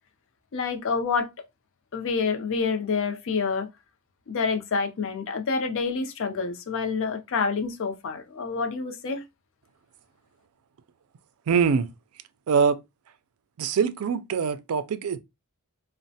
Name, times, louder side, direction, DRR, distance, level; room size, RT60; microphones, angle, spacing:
voice 1, 0.5-1.3 1.9-3.7 4.3-9.2, left 5 dB, 60° left, 0.5 m, -27 dB
voice 2, 11.5-11.9 12.5-12.8 13.6-15.2, right 6 dB, 70° right, 0.4 m, -23 dB
3.0 x 2.1 x 2.7 m
head